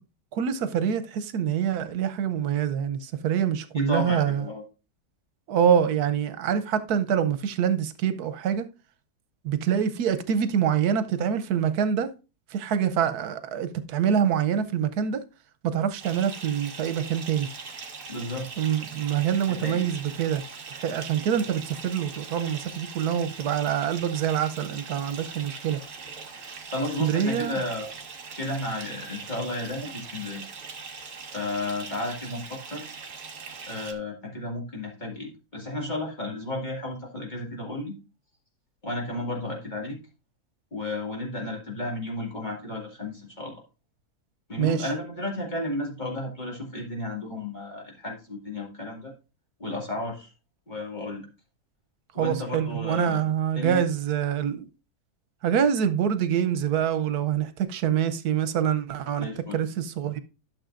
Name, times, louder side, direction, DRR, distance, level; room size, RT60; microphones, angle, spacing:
voice 1, 0.3-4.4 5.5-8.7 9.4-12.1 12.5-15.2 15.6-17.5 18.6-20.4 20.7-25.8 27.0-27.6 44.6-44.9 52.2-54.7 55.4-59.3 59.5-60.2, right 8 dB, 85° right, 1.3 m, -25 dB
voice 2, 3.7-4.6 18.1-18.5 19.6-19.9 26.3-27.9 28.3-30.5 31.3-33.0 33.7-38.0 38.8-40.0 40.7-43.6 44.5-49.1 49.6-50.3 50.7-51.3 52.1-53.2 53.6-53.8 59.2-59.6, left 2 dB, 30° left, 2.3 m, -33 dB
Bathtub (filling or washing) / Fill (with liquid), 16.0-33.9, right 5 dB, 65° right, 1.7 m, -41 dB
12.0 x 6.7 x 2.5 m
omnidirectional pair, 1.6 m